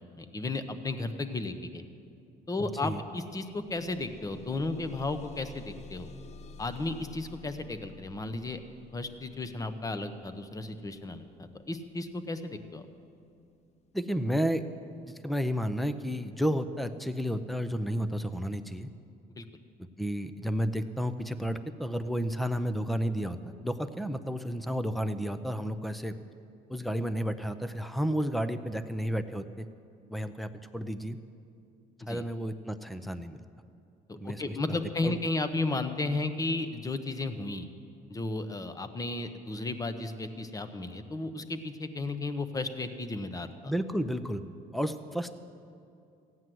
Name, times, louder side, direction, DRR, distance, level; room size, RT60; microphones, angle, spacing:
voice 1, 0.0-1.8 2.5-6.1 6.6-8.6 8.9-12.8 19.4-19.5 32.0-32.2 34.2-37.7 38.1-43.7, left 2 dB, 20° left, 10 dB, 0.9 m, -34 dB
voice 2, 2.6-3.0 13.9-14.6 15.2-18.9 20.0-26.2 26.7-29.7 30.1-31.2 32.1-33.4 34.2-34.6 35.0-35.2 43.6-44.4 44.7-45.4, equal, ahead, 11 dB, 0.6 m, -32 dB
sound 1, 3.0-14.0 14.8-14.9 15.4-15.5, left 3 dB, 40° left, 0.6 m, -51 dB
15.5 x 9.5 x 7.7 m, 2.5 s
cardioid pair, 110°, 17 cm